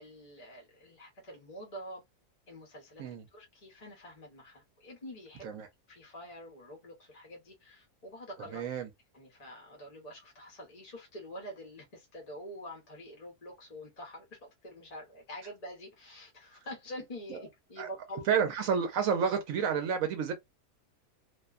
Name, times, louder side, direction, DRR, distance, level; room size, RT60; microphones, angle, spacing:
voice 1, 0.0-2.0 2.5-5.5 5.9-8.6 9.1-18.3, equal, 30° left, 0.9 m, -46 dB
voice 2, 8.5-8.9 17.8-17.9 18.3-20.3, right 7 dB, 70° right, 1.0 m, -29 dB
2.7 x 2.2 x 2.3 m
omnidirectional pair, 1.6 m